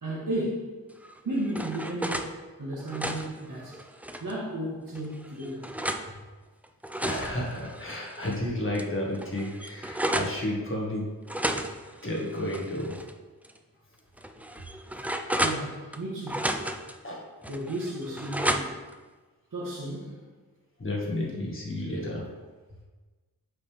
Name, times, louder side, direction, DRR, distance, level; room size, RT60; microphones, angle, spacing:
voice 1, 0.0-0.8 1.2-3.8 4.2-5.7 15.4-16.5 17.5-18.7 19.5-20.2, right 1 dB, 55° right, -7 dB, 1.5 m, -34 dB
sound 1, 1.0-2.3 2.7-4.4 4.9-6.1 6.6-8.4 8.7-8.8 9.1-10.4 11.3-13.1 13.4-13.6 14.2-16.0 16.3-17.0 17.4-18.9, right 1 dB, 5° right, 0.3 m, -33 dB
voice 2, 7.0-11.0 12.0-12.9 17.0-17.2 20.8-22.2, left 1 dB, 35° left, -3 dB, 1.7 m, -32 dB
8.0 x 5.4 x 3.4 m, 1.3 s
wide cardioid pair, 100°, 37 cm